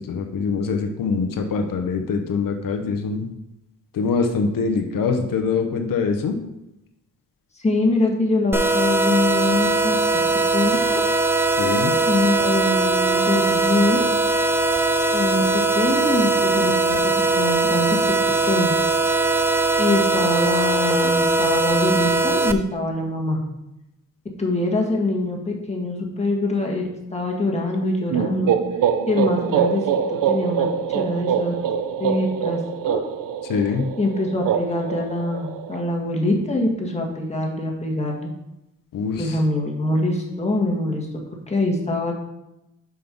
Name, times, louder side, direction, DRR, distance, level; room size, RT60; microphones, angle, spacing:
voice 1, 0.0-3.3 3.9-6.4 11.6-12.0 33.4-33.9 38.9-39.4, left 5 dB, 85° left, 6 dB, 0.9 m, -24 dB
voice 2, 7.5-10.0 10.5-11.0 12.1-14.1 15.1-18.0 18.4-18.7 19.8-23.4 24.4-26.8 27.1-28.5 29.1-29.9 30.2-31.5 32.0-33.0 34.0-38.3 39.2-41.1 41.5-42.1, left 2 dB, 20° left, -1 dB, 1.6 m, -24 dB
sound 1, 8.5-22.5, right 3 dB, 5° right, 0.4 m, -20 dB
sound 2, 28.1-35.8, right 8 dB, 80° right, 0.6 m, -24 dB
6.0 x 5.3 x 5.2 m, 0.91 s
wide cardioid pair, 115°, 33 cm